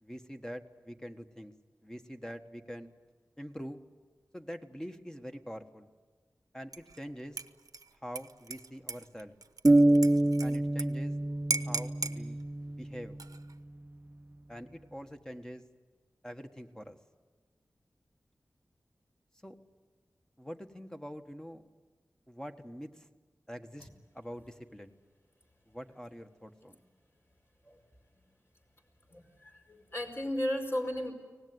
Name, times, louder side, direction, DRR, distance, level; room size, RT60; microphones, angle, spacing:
voice 1, 0.0-1.5 1.8-2.9 3.4-3.8 4.3-5.9 6.5-7.4 7.9-9.3 10.4-11.1 11.7-12.4 12.8-13.2 14.5-15.6 16.2-17.0 19.4-19.5 20.4-21.6 22.3-23.1 23.5-23.9 24.1-24.9 25.7-26.8, equal, 10° left, 5 dB, 1.5 m, -44 dB
Dishes pots and pans / Liquid, 6.7-7.0 7.4-10.9 11.1-11.2 11.5-12.2 13.0-13.5, right 3 dB, 70° right, 1.0 m, -37 dB
sound 1, 9.6-13.4, right 1 dB, 25° right, 0.8 m, -26 dB
voice 2, 29.1-31.1, left 1 dB, 40° left, 2 dB, 5.0 m, -35 dB
24.0 x 19.0 x 9.6 m, 1.4 s
wide cardioid pair, 65°, 6 cm